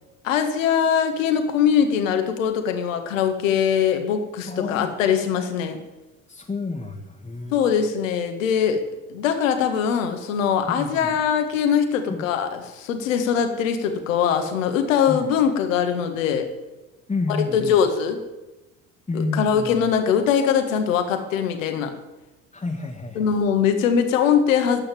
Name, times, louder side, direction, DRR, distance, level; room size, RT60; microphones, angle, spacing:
voice 1, 0.2-5.8 7.5-8.8 9.1-12.5 12.7-16.5 17.5-18.2 19.4-21.9 23.2-24.8, left 7 dB, 70° left, 6 dB, 1.9 m, -21 dB
voice 2, 4.5-4.9 6.3-7.6 10.7-11.2 12.1-12.2 15.1-15.3 17.1-17.8 19.1-19.9 22.5-23.3, left 3 dB, 15° left, -2 dB, 1.8 m, -30 dB
12.5 x 8.8 x 9.0 m, 1.1 s
figure-of-eight pair, 55°, 41 cm